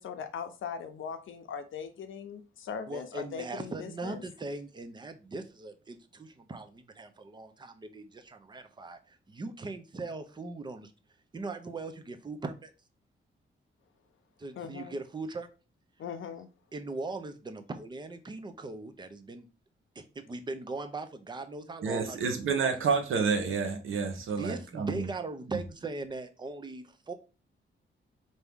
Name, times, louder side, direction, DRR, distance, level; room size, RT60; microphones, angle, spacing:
voice 1, 0.0-4.2 14.6-15.0 16.0-16.5, left 7 dB, 75° left, 0.6 m, -40 dB
voice 2, 2.9-10.9 11.3-12.7 14.4-15.5 16.7-19.5 20.0-22.2 22.5-22.7 24.2-27.1, right 3 dB, 20° right, 0.5 m, -40 dB
voice 3, 21.8-25.1, right 5 dB, 80° right, 0.9 m, -29 dB
4.6 x 2.7 x 3.5 m
wide cardioid pair, 140°, 20 cm